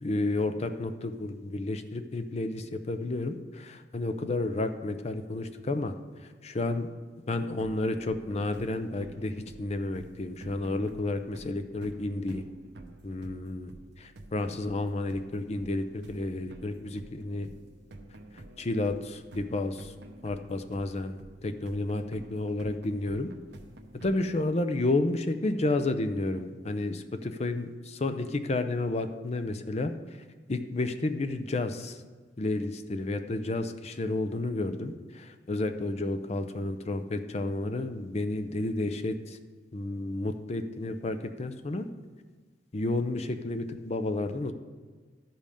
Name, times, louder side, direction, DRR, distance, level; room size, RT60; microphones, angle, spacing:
voice 1, 0.0-5.9 6.4-6.9 7.3-12.4 13.0-13.7 14.0-17.5 18.3-19.9 20.2-23.3 24.0-30.2 30.5-32.0 32.4-39.4 39.7-41.9 42.7-44.5, left 2 dB, 35° left, 8 dB, 0.5 m, -31 dB
sound 1, 7.6-24.4, right 1 dB, 65° right, 0.8 m, -49 dB
12.0 x 5.3 x 5.0 m, 1.5 s
head